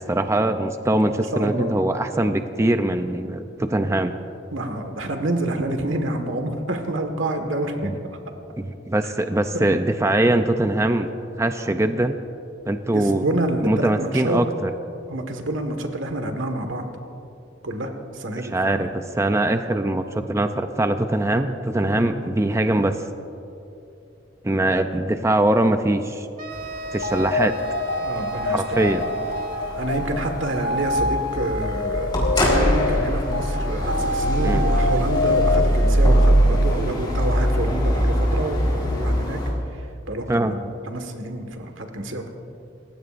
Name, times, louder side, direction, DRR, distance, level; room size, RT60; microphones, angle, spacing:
voice 1, 0.0-4.1 7.8-7.9 8.6-11.1 11.4-12.2 12.7-13.2 13.6-14.7 18.5-22.9 24.4-26.3 26.9-27.5 28.5-29.0 34.4-34.6 40.3-40.6, right 1 dB, 15° right, 8 dB, 0.5 m, -22 dB
voice 2, 1.0-1.9 4.5-7.9 9.0-9.1 12.9-14.4 15.1-16.9 17.6-18.9 21.9-22.2 28.0-29.2 29.7-39.4 39.7-42.3, right 1 dB, 90° right, 5 dB, 1.6 m, -28 dB
sound 1, 26.4-30.0, left 1 dB, 45° right, 1.5 m, -35 dB
sound 2, 26.5-39.5, equal, 25° left, 4.1 m, -22 dB
sound 3, 27.0-36.8, left 2 dB, 60° left, 0.9 m, -27 dB
29.5 x 16.0 x 2.6 m, 2.7 s
head